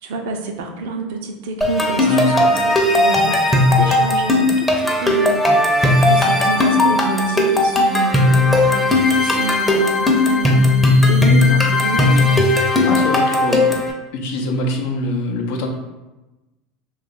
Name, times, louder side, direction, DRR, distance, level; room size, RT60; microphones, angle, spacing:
voice 1, 0.0-5.5 6.1-12.5, right 3 dB, 75° right, 4 dB, 0.5 m, -27 dB
sound 1, 1.6-13.9, left 2 dB, 10° left, 0.7 m, -16 dB
voice 2, 2.1-2.4 12.8-13.7 14.1-15.7, left 1 dB, 70° left, 2 dB, 0.6 m, -24 dB
2.8 x 2.4 x 4.0 m, 1.1 s
hypercardioid pair, 100°, 0 cm